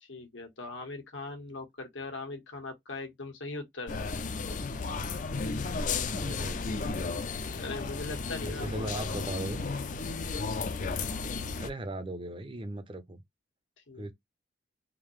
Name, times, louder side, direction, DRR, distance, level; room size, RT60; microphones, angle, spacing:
voice 1, 0.0-4.0 7.5-9.4 13.9-14.1, left 3 dB, 90° left, 1.4 m, -40 dB
sound 1, 3.9-11.7, left 4 dB, 40° left, 0.4 m, -33 dB
voice 2, 6.1-6.9 8.4-9.6 11.6-13.2 14.0-14.1, right 1 dB, 25° right, 0.5 m, -38 dB
3.7 x 2.7 x 3.1 m
head